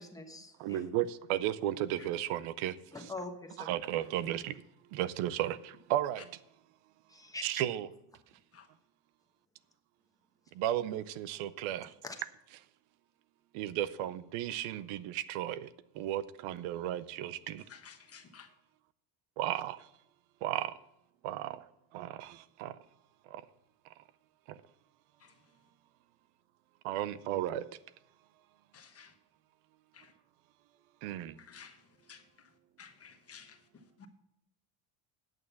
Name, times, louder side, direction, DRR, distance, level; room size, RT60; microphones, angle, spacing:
voice 1, 0.0-0.9 2.9-3.7 7.1-7.4 12.0-12.1, left 2 dB, 5° left, 1.2 m, -43 dB
voice 2, 0.6-3.1 3.6-4.6 4.9-6.3 7.4-7.9 10.5-11.9 13.5-15.7 15.9-17.6 19.4-19.9 20.4-20.8 21.2-21.7 21.9-22.8 23.3-23.4 24.5-24.6 26.8-27.7 31.0-31.4, right 12 dB, 75° right, 0.7 m, -34 dB
voice 3, 17.9-18.5 28.7-29.1 31.5-31.7 32.1-32.2 32.8-33.4 34.0-34.1, left 7 dB, 30° left, 1.2 m, -52 dB
9.2 x 6.3 x 7.0 m
cardioid pair, 135°, 50 cm